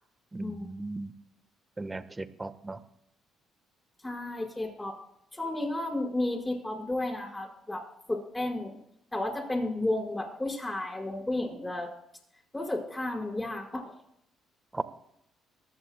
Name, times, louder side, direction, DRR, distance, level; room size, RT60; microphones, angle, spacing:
voice 1, 0.3-1.1 1.8-2.8 14.7-14.8, right 2 dB, 20° right, 1.3 m, -36 dB
voice 2, 4.0-4.9 5.3-7.8 8.1-8.8 9.1-11.9 12.5-13.9, left 1 dB, 15° left, 5.2 m, -32 dB
23.0 x 15.5 x 2.3 m
supercardioid pair, 60°, 0 cm